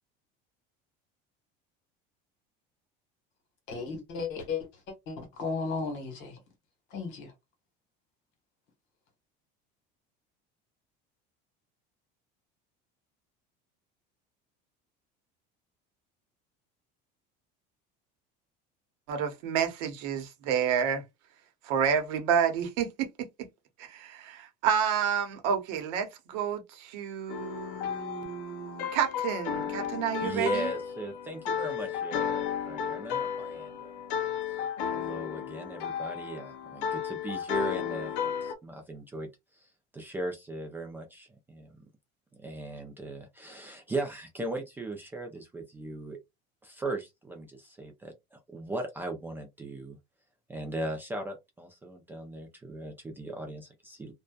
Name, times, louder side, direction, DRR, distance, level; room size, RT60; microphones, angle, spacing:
voice 1, 3.7-4.6 5.1-6.3 6.9-7.3, left 4 dB, 60° left, 1.3 m, -34 dB
voice 2, 19.1-21.0 21.6-23.1 23.8-30.7, right 7 dB, 85° right, 0.9 m, -29 dB
sound 1, 27.3-38.5, left 8 dB, 80° left, 0.6 m, -34 dB
voice 3, 30.2-33.9 34.5-34.6 34.9-39.3 39.9-41.7 42.4-46.2 46.6-50.0 50.5-54.1, right 2 dB, 10° right, 0.3 m, -38 dB
2.5 x 2.2 x 2.2 m
cardioid pair, 160°, 21 cm